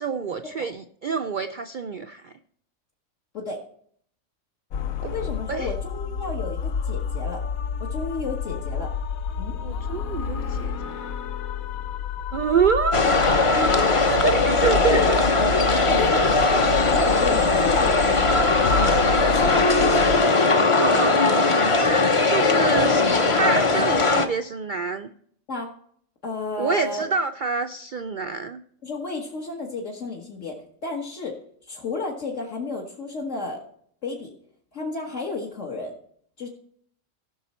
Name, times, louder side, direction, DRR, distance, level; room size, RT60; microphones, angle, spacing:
voice 1, 0.0-2.3 5.0-5.7 9.6-11.1 12.3-13.0 13.9-15.3 20.8-21.5 22.3-23.0 23.3-25.1 26.6-28.6, right 5 dB, 65° right, 8 dB, 0.4 m, -27 dB
sound 1, 4.7-20.2, left 6 dB, 90° left, 1.1 m, -30 dB
voice 2, 5.1-7.4 7.8-8.9 9.4-9.6 13.5-14.3 14.9-15.3 15.6-20.1 22.4-22.6 25.5-25.7 26.2-27.0 28.8-30.6 30.8-31.3 31.7-33.6 34.0-34.3 34.7-35.9 36.4-36.5, left 3 dB, 60° left, -2 dB, 1.8 m, -32 dB
sound 2, 12.9-24.3, left 3 dB, 30° left, 0.6 m, -19 dB
15.5 x 6.2 x 4.2 m, 0.63 s
omnidirectional pair, 1.4 m